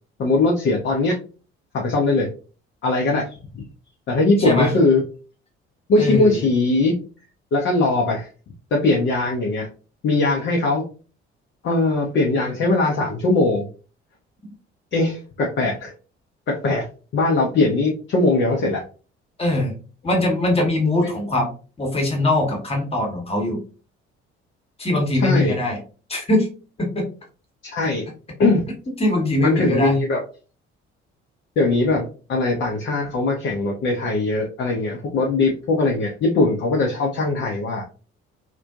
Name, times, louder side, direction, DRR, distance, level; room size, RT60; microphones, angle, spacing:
voice 1, 0.2-1.2 1.7-2.3 2.8-3.3 3.5-3.7 4.1-5.0 5.9-6.9 7.5-8.3 8.7-9.7 10.0-10.8 11.6-13.6 14.9-15.9 16.5-16.8 17.1-18.8 21.0-21.2 25.1-25.6 27.6-28.1 28.4-28.6 29.4-30.2 31.6-37.8, left 2 dB, 35° left, -1 dB, 0.6 m, -20 dB
voice 2, 4.4-4.7 6.0-6.4 19.4-19.7 20.0-21.5 21.8-23.6 24.8-25.8 26.1-26.5 26.8-27.1 29.0-30.0, left 1 dB, 20° left, 0 dB, 1.0 m, -21 dB
2.5 x 2.1 x 2.3 m, 0.37 s
figure-of-eight pair, 50°, 33 cm